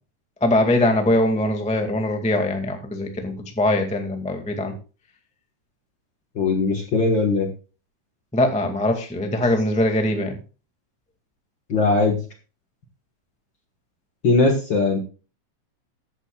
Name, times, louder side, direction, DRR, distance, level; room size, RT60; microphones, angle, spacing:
voice 1, 0.4-4.7 8.3-10.4, left 1 dB, 5° left, 4 dB, 1.1 m, -22 dB
voice 2, 6.4-7.5 11.7-12.2 14.2-15.0, left 3 dB, 45° left, 3 dB, 1.8 m, -19 dB
14.5 x 10.5 x 2.4 m, 0.34 s
omnidirectional pair, 3.9 m